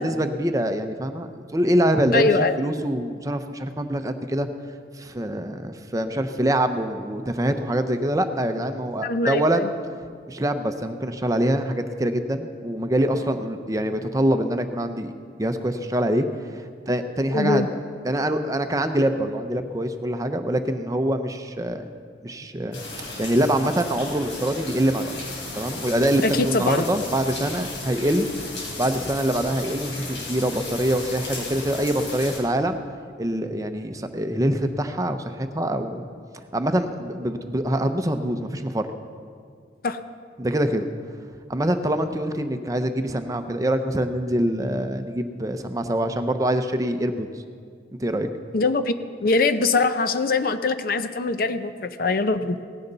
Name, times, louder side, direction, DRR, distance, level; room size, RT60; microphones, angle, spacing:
voice 1, 0.0-2.3 2.6-4.5 5.0-9.7 10.3-15.1 15.4-16.3 16.9-17.8 18.0-21.9 22.2-22.8 23.2-25.1 25.5-28.3 28.8-32.8 33.2-36.0 36.5-38.9 40.4-40.9 41.5-47.3 48.0-48.3, right 1 dB, 20° right, 7 dB, 0.6 m, -24 dB
voice 2, 2.1-2.5 9.0-9.7 17.3-17.7 26.2-26.9 39.8-40.0 48.5-48.9 49.2-52.6, left 3 dB, 50° left, 10 dB, 0.6 m, -22 dB
sound 1, 22.7-32.4, left 2 dB, 80° left, 4.4 m, -35 dB
17.5 x 15.0 x 4.0 m, 2.1 s
head